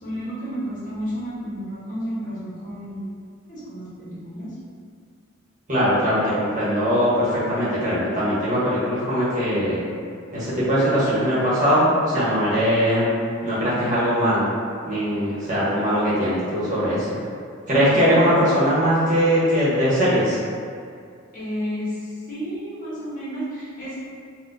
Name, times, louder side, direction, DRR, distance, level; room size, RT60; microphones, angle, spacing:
voice 1, 0.0-3.1 3.5-4.5 17.9-18.7 21.3-24.0, equal, 40° left, -9 dB, 1.0 m, -32 dB
voice 2, 5.7-9.8 10.3-13.1 13.4-14.5 14.8-17.1 17.7-20.4, equal, 40° right, -9 dB, 1.0 m, -20 dB
4.1 x 2.2 x 2.6 m, 2.3 s
head